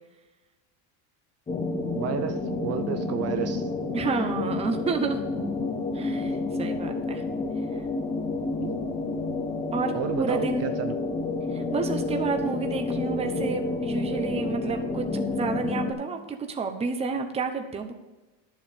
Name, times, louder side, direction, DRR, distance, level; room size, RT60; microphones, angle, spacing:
sound 1, 1.5-15.9, left 3 dB, 15° left, 1.1 m, -29 dB
voice 1, 1.9-3.7 8.6-8.8 9.9-10.9, right 9 dB, 35° right, 8 dB, 0.6 m, -32 dB
voice 2, 3.9-5.2 5.9-7.2 9.7-9.9 10.2-10.7 11.5-15.1 15.3-17.9, right 4 dB, 15° right, 5 dB, 0.9 m, -30 dB
11.5 x 7.4 x 5.2 m, 1.1 s
cardioid pair, 150°, 44 cm